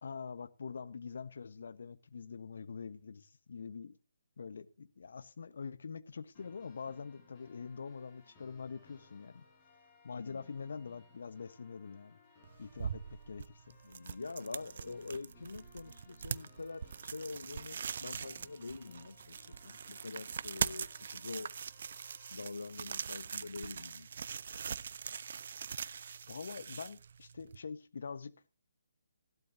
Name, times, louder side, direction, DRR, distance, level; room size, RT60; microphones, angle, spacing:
voice 1, 0.0-4.0 4.4-9.4 10.0-12.2 12.6-13.8 26.3-28.3, left 5 dB, 60° left, 1.1 m, -45 dB
sound 1, 6.3-22.3, left 3 dB, 30° left, 6.0 m, -63 dB
sound 2, 12.4-27.6, right 6 dB, 55° right, 0.5 m, -42 dB
voice 2, 13.8-21.5 22.3-24.1, left 3 dB, 75° left, 0.6 m, -45 dB
16.0 x 11.5 x 2.7 m
figure-of-eight pair, 145°, 0 cm